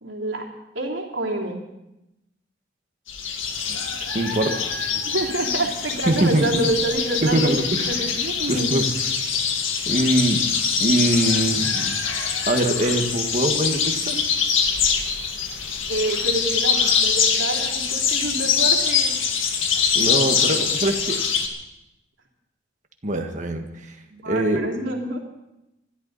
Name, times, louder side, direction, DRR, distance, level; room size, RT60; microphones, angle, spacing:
voice 1, 0.0-0.5 0.7-1.6 5.0-7.5 7.9-8.7 15.9-19.1 24.1-25.2, right 2 dB, 75° right, -1 dB, 3.2 m, -27 dB
sound 1, 3.1-21.5, left 6 dB, 85° left, 2.1 m, -23 dB
voice 2, 4.1-4.6 6.1-6.4 7.2-7.8 8.5-8.8 9.9-10.5 10.8-12.0 12.5-14.2 20.0-21.2 23.0-23.9 24.3-24.7, right 1 dB, 40° right, 4 dB, 1.7 m, -22 dB
27.5 x 12.5 x 4.2 m, 0.91 s
head